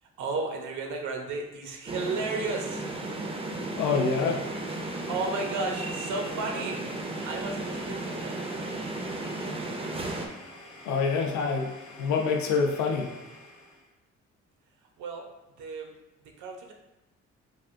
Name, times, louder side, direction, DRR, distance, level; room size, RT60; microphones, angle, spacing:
voice 1, 0.0-2.9 5.1-6.8 7.2-8.4 15.0-15.3 15.6-15.9 16.2-16.7, right 3 dB, 75° right, 2 dB, 0.6 m, -33 dB
sound 1, 1.9-10.3, right 2 dB, 20° right, 0.4 m, -34 dB
voice 2, 3.8-4.4 10.8-11.7 12.0-13.1, left 5 dB, 70° left, 2 dB, 0.5 m, -26 dB
Domestic sounds home sounds, 3.9-13.9, left 1 dB, 50° left, 1.0 m, -48 dB
3.4 x 2.5 x 2.4 m, 0.98 s
cardioid pair, 90°, 30 cm